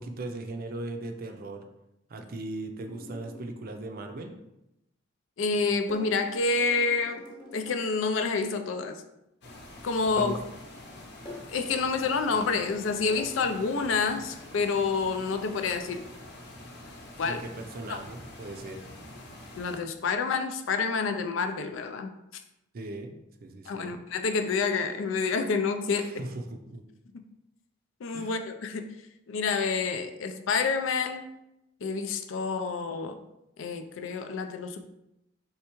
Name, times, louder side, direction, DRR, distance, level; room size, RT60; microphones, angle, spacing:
voice 1, 0.0-1.6 2.1-4.4 10.2-10.4 17.2-18.8 22.7-23.1 23.4-23.9 26.0-26.8 28.1-28.3, right 2 dB, 50° right, 5 dB, 0.5 m, -38 dB
sound 1, 2.9-3.6 5.9-7.8 11.2-13.4, left 2 dB, 25° left, 0.9 m, -46 dB
voice 2, 5.4-7.2 7.5-9.0 9.8-10.4 11.5-16.1 17.2-17.4 17.9-18.0 19.6-22.1 23.7-26.1 28.0-28.9 29.3-31.3 31.8-33.2 33.6-34.8, left 4 dB, 75° left, 8 dB, 0.4 m, -28 dB
sound 2, 9.4-19.8, left 1 dB, 60° left, 0.8 m, -46 dB
4.5 x 3.3 x 3.0 m, 0.88 s
head